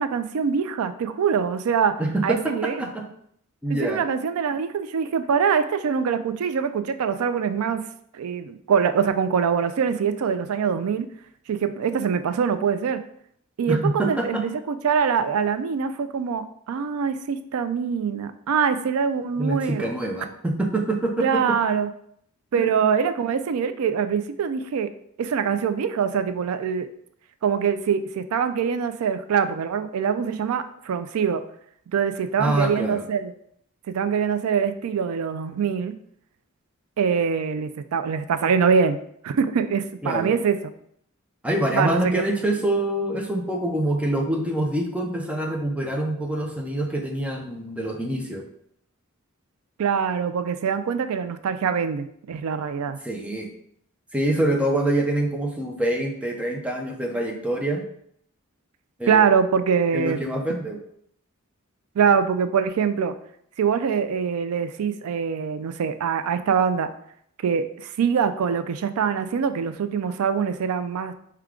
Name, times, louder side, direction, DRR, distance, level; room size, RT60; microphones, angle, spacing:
voice 1, 0.0-1.9 2.2-2.7 3.7-7.8 8.1-11.1 11.5-13.0 13.6-19.9 21.2-21.9 22.5-24.9 25.2-26.9 27.4-31.4 31.9-33.3 33.9-36.0 37.0-39.0 39.2-40.6 41.7-42.2 49.8-53.0 59.1-60.2 62.0-63.1 63.6-66.9 67.4-71.1, right 6 dB, 80° right, 10 dB, 0.4 m, -24 dB
voice 2, 2.0-3.1 3.6-4.0 13.7-14.4 19.4-21.6 22.5-22.8 32.4-33.0 40.0-40.3 41.4-48.5 53.0-53.5 54.1-57.8 59.0-59.2 59.9-60.8, right 1 dB, 5° right, 1 dB, 0.5 m, -25 dB
4.7 x 2.2 x 3.6 m, 0.68 s
head